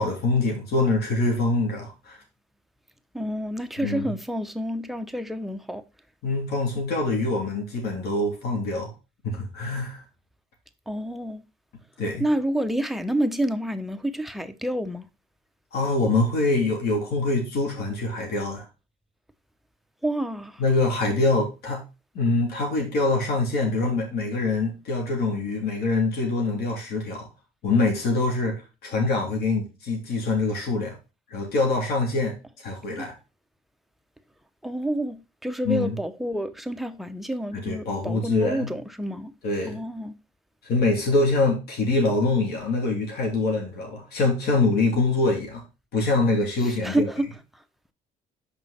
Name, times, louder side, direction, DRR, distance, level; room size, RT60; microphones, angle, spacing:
voice 1, 0.0-2.2 3.8-4.1 6.2-8.9 9.2-10.0 12.0-12.3 15.7-18.6 20.6-21.8 22.1-27.3 27.6-28.6 28.8-30.9 31.3-32.3 32.6-33.1 35.6-36.0 37.5-38.7 39.4-39.8 40.6-45.6 45.9-47.1, left 3 dB, 70° left, 3.1 m, -24 dB
voice 2, 3.1-5.8 10.9-11.4 12.2-15.1 20.0-20.6 33.0-33.1 34.6-39.3 39.7-40.1 46.8-47.3, right 1 dB, ahead, 0.7 m, -28 dB
6.1 x 5.0 x 4.2 m
cardioid pair, 110°, 17 cm